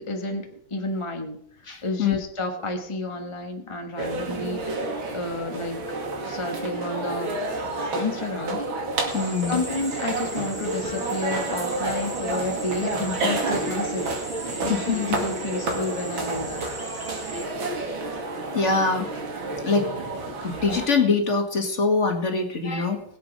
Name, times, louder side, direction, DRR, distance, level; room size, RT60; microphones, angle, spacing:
voice 1, 0.0-5.8 6.2-7.3 7.9-8.6 9.5-14.1 14.4-16.7, left 2 dB, 20° left, 4 dB, 1.0 m, -31 dB
voice 2, 1.7-2.2 9.1-9.6 14.5-15.2 18.5-19.1 19.6-19.9 20.4-23.0, left 4 dB, 35° left, 4 dB, 2.0 m, -24 dB
sound 1, 4.0-20.9, right 2 dB, 80° right, 3.0 m, -30 dB
sound 2, 9.1-17.5, right 1 dB, 10° right, 1.5 m, -40 dB
20.0 x 8.0 x 5.3 m, 0.71 s
omnidirectional pair, 2.2 m